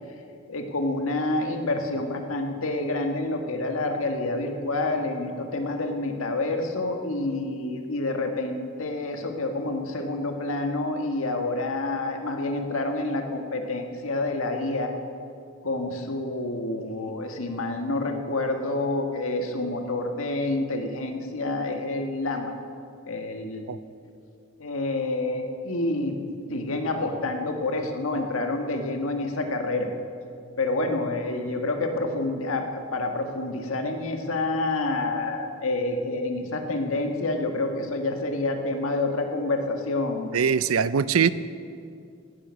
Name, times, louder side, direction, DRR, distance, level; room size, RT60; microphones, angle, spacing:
voice 1, 0.5-14.9 15.6-22.5 23.1-23.7 24.6-26.2 26.5-29.9 30.6-40.3, left 2 dB, 75° left, 1.6 m, -28 dB
voice 2, 40.3-41.3, right 7 dB, 85° right, 0.5 m, -22 dB
16.5 x 10.5 x 6.4 m
head